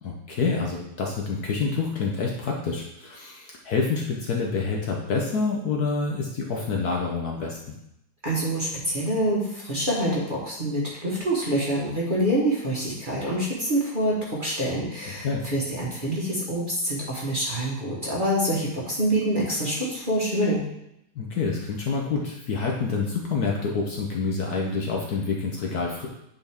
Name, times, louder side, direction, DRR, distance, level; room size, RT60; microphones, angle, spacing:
voice 1, 0.0-7.8 15.0-15.4 21.2-26.1, left 4 dB, 60° left, -1 dB, 1.2 m, -27 dB
voice 2, 8.2-20.6, right 1 dB, 30° right, -5 dB, 1.2 m, -26 dB
8.9 x 4.0 x 3.5 m, 0.81 s
omnidirectional pair, 2.1 m